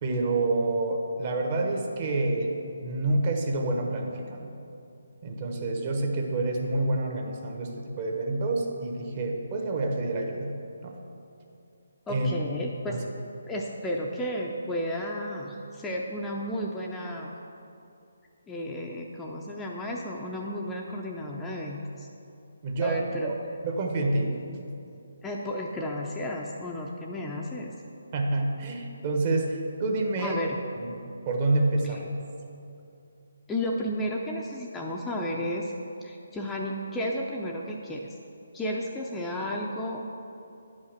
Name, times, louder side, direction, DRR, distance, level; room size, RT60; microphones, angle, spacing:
voice 1, 0.0-4.5 5.2-10.5 10.8-11.0 12.1-12.3 12.8-13.0 22.6-23.3 23.6-24.3 28.1-30.4 30.8-31.0 31.2-32.1, right 2 dB, 35° right, 1 dB, 1.2 m, -28 dB
voice 2, 12.1-13.0 13.5-17.3 18.5-22.1 22.8-23.3 25.2-27.7 30.2-30.6 31.8-32.0 33.5-35.7 36.0-38.1 38.5-40.0, equal, 10° left, -2 dB, 0.6 m, -33 dB
10.0 x 5.6 x 6.6 m, 2.7 s
figure-of-eight pair, 155°, 0 cm